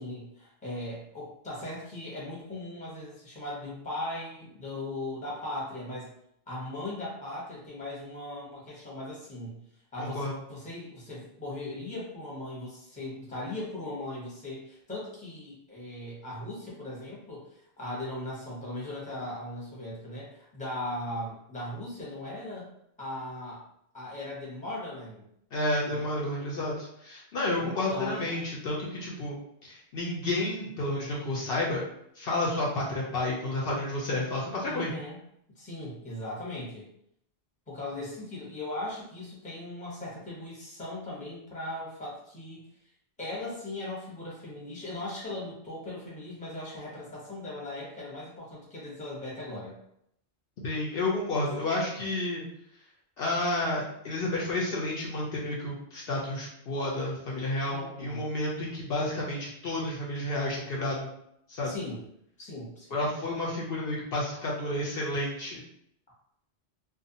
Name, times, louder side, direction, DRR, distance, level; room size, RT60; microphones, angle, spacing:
voice 1, 0.0-6.1 6.5-9.6 9.9-10.2 10.5-22.7 23.0-23.6 23.9-25.3 25.9-26.0 27.6-28.4 34.7-35.2 35.5-36.9 37.7-42.6 43.2-49.8 57.7-58.3 61.6-62.0 62.4-63.0, left 1 dB, 10° left, -6 dB, 0.8 m, -38 dB
voice 2, 10.0-10.4 25.5-31.8 32.1-34.9 50.6-52.4 53.2-61.1 61.5-61.7 62.9-65.6, left 1 dB, 65° left, -4 dB, 0.8 m, -31 dB
2.5 x 2.2 x 2.7 m, 0.73 s
omnidirectional pair, 1.1 m